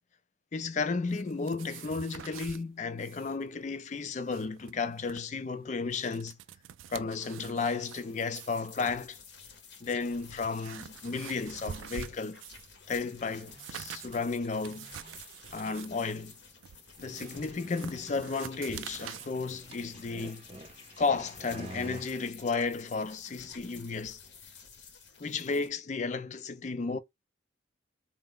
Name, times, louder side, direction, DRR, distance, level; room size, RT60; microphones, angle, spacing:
voice 1, 0.5-6.4 6.9-9.2 9.8-12.4 12.9-14.9 15.5-16.3 17.0-20.4 21.0-24.2 25.2-27.0, left 4 dB, 35° left, 0.4 m, -33 dB
sound 1, 1.1-2.6 3.0-3.4 3.6-3.7 4.1-5.2 5.7-8.0 8.3-8.7 9.5-9.6 10.0-12.7 13.1-19.3, right 9 dB, 80° right, 0.3 m, -46 dB
sound 2, 5.7-5.8 6.3-6.4 7.0-22.3, right 2 dB, 30° right, 0.6 m, -53 dB
sound 3, 8.0-25.7, left 5 dB, 65° left, 0.7 m, -52 dB
4.2 x 2.1 x 3.6 m
head